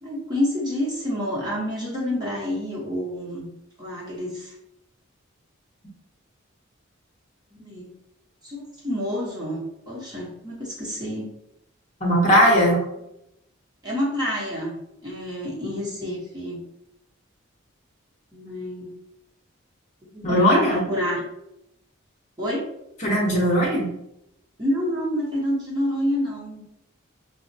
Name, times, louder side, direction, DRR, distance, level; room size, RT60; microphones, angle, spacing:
voice 1, 0.0-3.5 3.8-4.5 7.5-7.9 8.4-11.3 13.8-14.8 15.0-16.6 18.3-18.9 20.0-21.2 22.4-22.6 24.6-26.6, equal, 20° right, -5 dB, 0.9 m, -28 dB
voice 2, 12.0-12.8 20.2-20.8 23.0-23.9, equal, 35° left, -3 dB, 0.9 m, -18 dB
5.6 x 2.0 x 2.7 m, 0.83 s
head